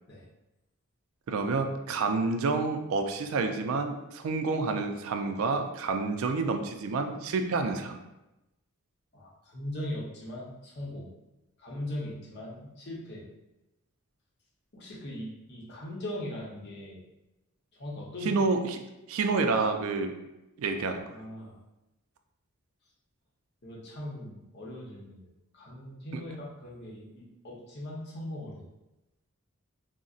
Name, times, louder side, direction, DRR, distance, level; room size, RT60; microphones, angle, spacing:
voice 1, 1.3-8.0 18.2-18.8 19.1-20.1 20.6-21.0 26.1-26.2, right 4 dB, 75° right, 6 dB, 0.3 m, -29 dB
voice 2, 9.1-11.1 11.6-13.2 14.7-17.0 17.7-18.4 20.7-21.6 23.6-25.3 25.5-28.6, left 1 dB, 50° left, -4 dB, 0.7 m, -40 dB
3.8 x 2.0 x 2.4 m, 0.96 s
head